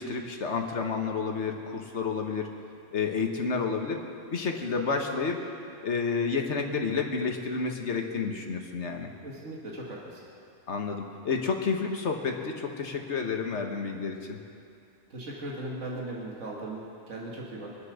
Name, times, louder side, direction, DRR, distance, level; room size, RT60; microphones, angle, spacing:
voice 1, 0.0-2.5 2.9-4.0 4.3-5.4 5.8-9.1 10.7-14.4, left 5 dB, 60° left, 3 dB, 1.6 m, -30 dB
voice 2, 9.2-10.2 15.1-17.8, right 1 dB, 70° right, -4 dB, 2.4 m, -38 dB
24.5 x 8.3 x 6.5 m, 2.5 s
omnidirectional pair, 1.3 m